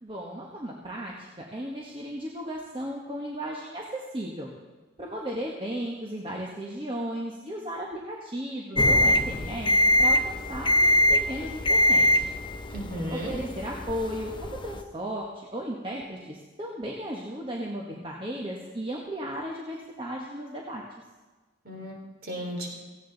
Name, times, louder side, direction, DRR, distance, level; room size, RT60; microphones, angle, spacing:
voice 1, 0.0-4.5 5.0-9.7 10.0-12.3 13.1-20.8, equal, 25° right, -2 dB, 1.2 m, -35 dB
sound 1, 8.8-14.8, left 1 dB, 25° left, 0.6 m, -23 dB
voice 2, 12.7-13.3 21.6-22.7, equal, 45° right, -1 dB, 3.4 m, -34 dB
17.5 x 15.5 x 4.0 m, 1.3 s
head